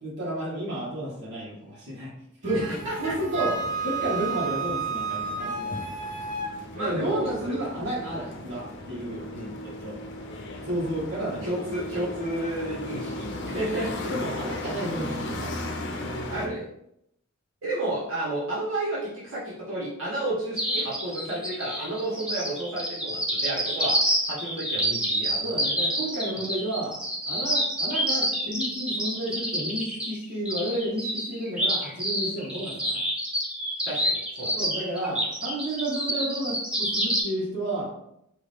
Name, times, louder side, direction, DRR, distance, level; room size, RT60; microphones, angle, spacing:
voice 1, 0.0-2.1 2.4-5.9 6.8-9.3 9.6-10.0 10.7-11.5 14.1-15.5 25.4-27.0 27.3-33.0 34.6-37.9, right 1 dB, 60° right, -6 dB, 1.7 m, -31 dB
sound 1, 2.4-16.5, left 1 dB, 60° left, 0.7 m, -37 dB
Wind instrument woodwind instrument, 2.4-6.5, right 4 dB, 40° right, 0.6 m, -31 dB
voice 2, 2.5-3.1 6.7-7.6 9.3-9.5 11.4-14.1 16.3-16.6 17.6-24.0 24.3-25.6 33.8-34.6, right 1 dB, 75° right, -8 dB, 1.5 m, -32 dB
sound 2, 20.6-37.2, equal, 5° right, 0.8 m, -28 dB
4.8 x 2.7 x 3.5 m, 0.77 s
head